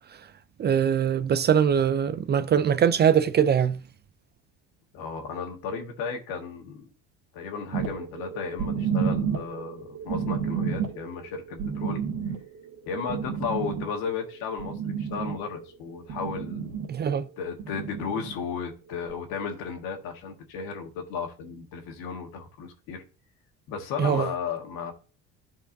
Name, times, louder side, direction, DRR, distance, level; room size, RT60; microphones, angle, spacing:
voice 1, 0.6-3.8 16.9-17.3 24.0-24.3, right 8 dB, 30° right, 0.4 m, -22 dB
voice 2, 4.9-6.9 7.3-12.0 12.9-16.7 17.4-23.0 23.7-24.9, left 5 dB, 80° left, 1.6 m, -34 dB
sound 1, 7.7-15.6 15.9-16.9 17.6-18.3 19.1-19.2, right 7 dB, 55° right, 2.0 m, -31 dB
12.0 x 4.6 x 2.6 m
supercardioid pair, 95°, 34 cm